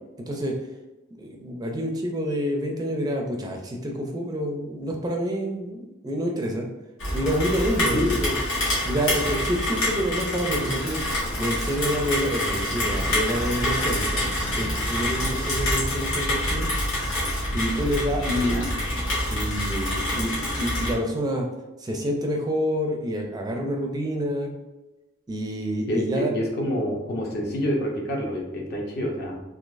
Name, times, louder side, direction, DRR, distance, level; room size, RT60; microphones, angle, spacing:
voice 1, 1.1-6.7 7.1-8.4 8.8-11.0 11.4-16.7 17.5-18.7 19.3-21.5 21.8-24.5 25.3-26.3, equal, 20° right, 2 dB, 0.4 m, -28 dB
Rain, 7.0-20.9, left 1 dB, 85° left, 1.4 m, -26 dB
voice 2, 18.3-18.7 25.9-29.4, left 1 dB, 55° left, 0 dB, 0.7 m, -27 dB
3.8 x 2.8 x 2.5 m, 1.1 s
head